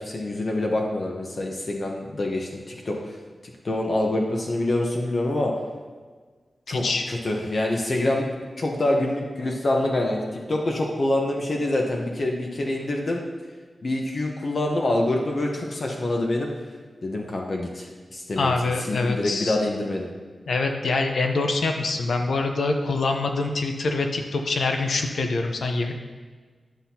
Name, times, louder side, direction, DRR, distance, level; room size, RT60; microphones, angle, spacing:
voice 1, 0.0-3.0 3.6-5.5 6.7-8.3 8.6-13.2 13.8-16.5 17.0-18.5 18.8-20.1, left 1 dB, 50° left, 0 dB, 0.9 m, -26 dB
voice 2, 18.4-19.6 20.5-25.9, left 3 dB, 85° left, 4 dB, 0.7 m, -25 dB
10.5 x 5.9 x 2.8 m, 1.5 s
wide cardioid pair, 100°, 0 cm